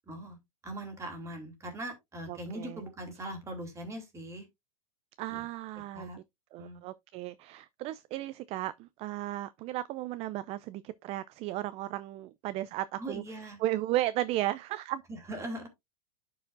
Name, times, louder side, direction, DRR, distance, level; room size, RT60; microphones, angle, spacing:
voice 1, 0.1-0.4 0.6-4.5 5.3-5.4 5.9-6.2 6.6-6.8 13.0-13.6 15.1-15.7, right 1 dB, 15° right, 3.0 m, -40 dB
voice 2, 2.3-2.8 5.2-6.1 6.5-13.2 13.6-15.0, right 15 dB, 35° right, 0.4 m, -35 dB
11.0 x 4.9 x 2.6 m
hypercardioid pair, 125°, 18 cm